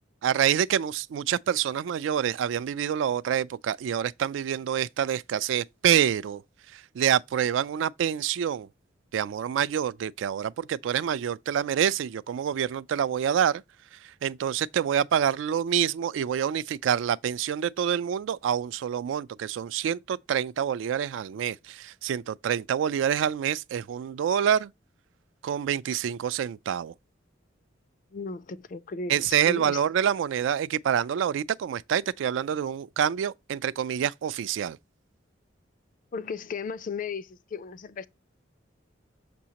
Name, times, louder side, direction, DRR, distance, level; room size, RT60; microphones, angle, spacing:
voice 1, 0.2-6.4 6.7-8.7 9.1-13.6 14.2-24.7 25.4-26.9 29.1-34.8, right 9 dB, 75° right, 0.3 m, -27 dB
voice 2, 28.1-29.8 36.1-38.1, left 4 dB, 45° left, 0.4 m, -35 dB
6.2 x 6.0 x 2.8 m
head